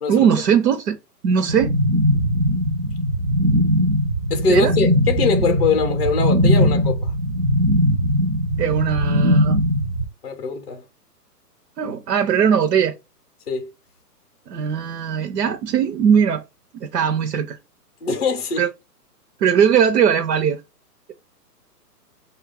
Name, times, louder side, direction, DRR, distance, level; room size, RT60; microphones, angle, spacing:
voice 1, 0.1-1.0 1.2-1.8 4.5-4.7 8.6-9.6 11.8-12.9 14.5-16.4 16.7-17.6 18.6-18.7 19.4-20.6, right 7 dB, 80° right, 0.7 m, -19 dB
sound 1, 1.5-10.0, equal, 45° right, 0.5 m, -19 dB
voice 2, 4.3-7.1 10.2-10.8 13.5-13.7 18.0-18.7, left 4 dB, 40° left, 0.5 m, -22 dB
5.2 x 2.3 x 3.3 m
hypercardioid pair, 180°, 49 cm